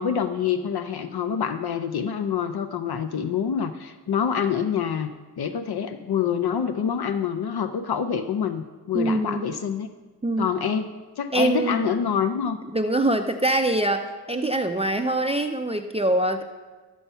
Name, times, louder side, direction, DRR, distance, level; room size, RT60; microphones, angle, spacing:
voice 1, 0.0-5.1 5.4-9.9 10.4-12.6, left 7 dB, 70° left, 9 dB, 0.6 m, -26 dB
voice 2, 8.9-9.5 10.2-10.5 11.3-11.9 12.7-16.4, right 1 dB, 15° right, 6 dB, 0.4 m, -24 dB
11.5 x 7.0 x 5.5 m, 1.3 s
wide cardioid pair, 145°, 39 cm